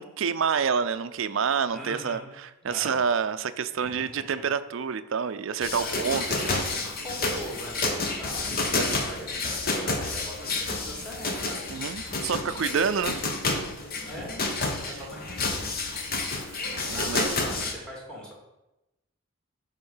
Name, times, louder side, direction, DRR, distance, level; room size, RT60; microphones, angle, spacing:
voice 1, 0.0-6.6 8.7-9.0 11.7-13.2 16.7-17.3, right 6 dB, 65° right, 12 dB, 0.4 m, -28 dB
voice 2, 1.7-2.3 2.6-3.0 3.8-4.4 5.8-6.1 6.4-12.2 12.5-13.2 14.0-14.5 14.9-15.7 16.9-18.3, equal, 5° left, -3 dB, 2.2 m, -41 dB
sound 1, 5.6-17.7, left 3 dB, 45° left, 1.0 m, -30 dB
10.0 x 3.7 x 5.6 m, 0.97 s
head